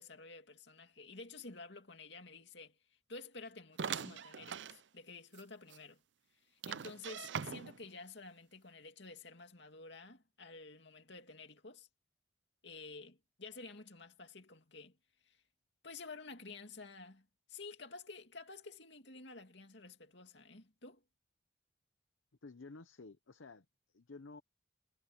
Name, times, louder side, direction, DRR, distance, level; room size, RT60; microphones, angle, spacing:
voice 1, 0.0-6.0 6.3-11.9 12.6-15.0 15.2-15.4 15.8-21.0, left 3 dB, 60° left, 2.7 m, -51 dB
sound 1, 3.8-4.8 5.3-5.4 5.7-5.8 6.6-7.9, right 7 dB, 65° right, 0.5 m, -41 dB
voice 2, 22.4-24.4, left 3 dB, 85° left, 0.8 m, -53 dB
head